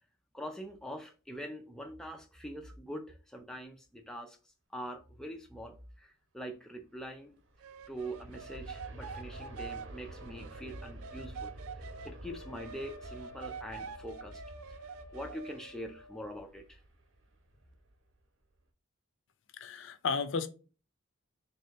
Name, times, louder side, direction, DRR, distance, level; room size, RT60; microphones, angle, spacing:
voice 1, 0.3-4.4 4.7-7.4 7.9-14.4 14.7-14.8 15.1-16.8, equal, 5° left, 0.3 m, -44 dB
Aircraft, 7.3-18.1 18.6-18.7, right 1 dB, 65° right, 0.8 m, -49 dB
sound 1, 7.6-12.1 12.5-15.7, right 6 dB, 90° right, 0.4 m, -46 dB
Wind instrument woodwind instrument, 12.2-16.5, left 3 dB, 85° left, 1.0 m, -54 dB
voice 2, 19.6-20.5, left 5 dB, 60° left, 0.5 m, -33 dB
3.6 x 2.8 x 3.2 m
head